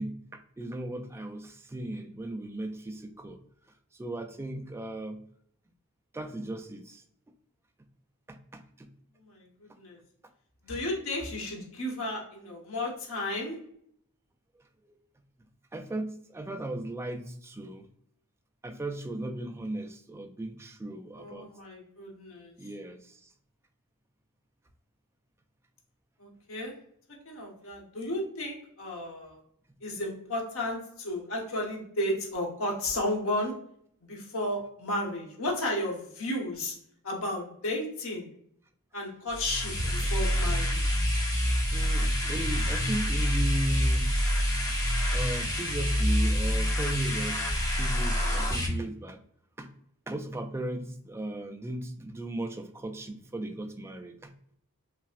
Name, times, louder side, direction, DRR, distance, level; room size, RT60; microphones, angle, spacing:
voice 1, 0.0-3.4 4.0-5.2 6.1-7.0 8.3-8.9 9.7-9.8 15.7-17.9 18.6-21.5 22.6-23.3 40.0-40.1 41.5-44.1 45.1-49.2 49.6-49.7 50.1-54.3, right 1 dB, 10° right, 6 dB, 0.3 m, -36 dB
voice 2, 10.6-13.6 21.1-22.5 26.2-26.7 27.2-29.4 29.8-33.5 34.1-36.7 37.0-38.3 38.9-41.0, left 1 dB, 65° left, -1 dB, 1.1 m, -33 dB
sound 1, 39.3-48.7, equal, 15° left, 0.8 m, -27 dB
5.5 x 2.0 x 2.4 m, 0.67 s
head